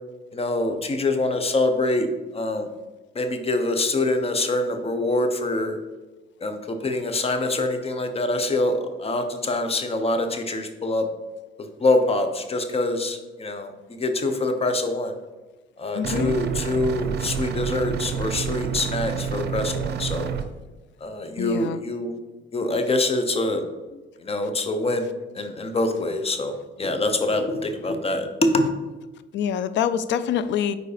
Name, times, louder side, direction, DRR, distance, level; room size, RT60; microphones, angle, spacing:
voice 1, 0.3-2.1 2.3-2.7 3.1-5.8 6.4-11.0 11.8-15.1 15.8-20.3 21.0-22.1 22.5-23.6 24.2-25.1 25.3-28.7, left 2 dB, 30° left, 7 dB, 0.8 m, -25 dB
voice 2, 15.9-16.3 21.4-21.8 29.3-30.8, left 9 dB, 65° left, 13 dB, 0.4 m, -25 dB
sound 1, 16.0-20.4, right 8 dB, 55° right, 0.6 m, -28 dB
4.7 x 4.0 x 5.0 m, 1.2 s
cardioid pair, 90°, 20 cm